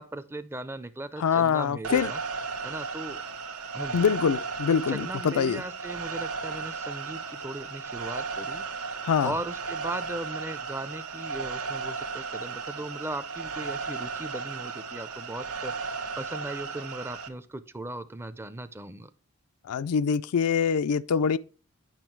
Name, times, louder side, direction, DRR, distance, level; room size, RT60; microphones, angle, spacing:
voice 1, 0.0-2.2 2.6-3.2 3.7-4.1 4.9-19.1, right 1 dB, 10° right, 0.4 m, -38 dB
voice 2, 1.2-2.1 3.9-5.6 9.0-9.3 19.7-21.4, left 7 dB, 90° left, 0.4 m, -24 dB
sound 1, 1.8-17.3, right 5 dB, 85° right, 1.0 m, -35 dB
9.0 x 6.1 x 4.5 m
head